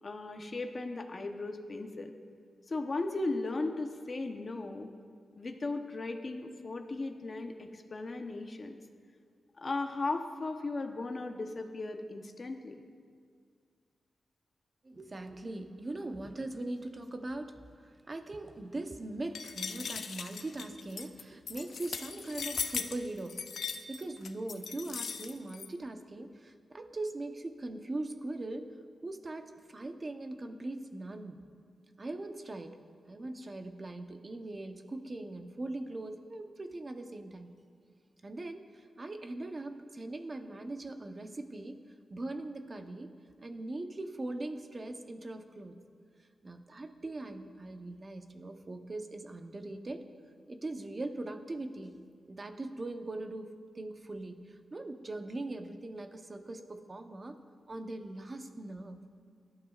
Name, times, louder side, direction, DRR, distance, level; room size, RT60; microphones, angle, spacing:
voice 1, 0.0-2.1 2.7-4.9 5.4-8.8 9.6-12.8, left 2 dB, 40° left, 4 dB, 0.9 m, -36 dB
voice 2, 14.8-28.8 29.0-31.5 32.0-32.8 33.1-37.5 38.2-41.8 42.1-45.8 46.4-50.0 50.5-57.4 57.7-59.3, right 2 dB, 30° right, 6 dB, 0.9 m, -41 dB
sound 1, 19.4-25.7, left 6 dB, 75° left, 0.6 m, -39 dB
23.0 x 12.0 x 2.4 m, 2.1 s
wide cardioid pair, 110°, 0 cm